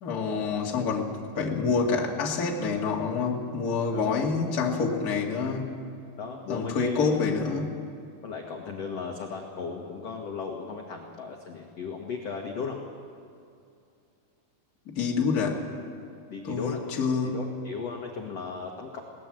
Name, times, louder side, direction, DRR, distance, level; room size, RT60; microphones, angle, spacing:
voice 1, 0.0-5.7 6.5-7.7 14.8-15.6 16.4-17.4, left 5 dB, 35° left, -1 dB, 1.7 m, -27 dB
voice 2, 6.2-7.2 8.2-12.8 16.3-16.8 17.2-19.0, left 5 dB, 55° left, 1 dB, 1.8 m, -36 dB
21.5 x 18.5 x 7.6 m, 2.5 s
omnidirectional pair, 4.9 m